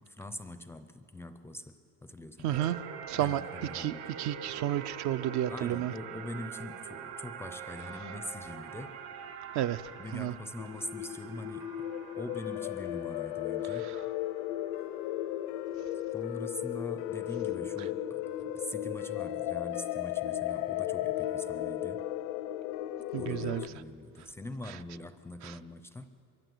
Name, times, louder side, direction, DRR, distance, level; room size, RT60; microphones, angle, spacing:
voice 1, 0.0-2.7 3.2-4.1 5.5-9.0 10.0-11.9 12.1-13.9 16.1-22.0 23.2-26.1, left 1 dB, 5° left, 10 dB, 0.5 m, -43 dB
voice 2, 2.4-2.8 3.1-3.4 3.7-5.9 9.5-9.8 10.1-10.3 13.7-14.0 23.1-23.6 25.4-25.5, right 12 dB, 45° right, 12 dB, 0.5 m, -31 dB
sound 1, 2.5-15.1, right 7 dB, 90° right, 1.7 m, -45 dB
sound 2, 10.6-23.7, left 12 dB, 75° left, 0.8 m, -35 dB
24.5 x 23.5 x 7.9 m, 2.6 s
cardioid pair, 170°, 40 cm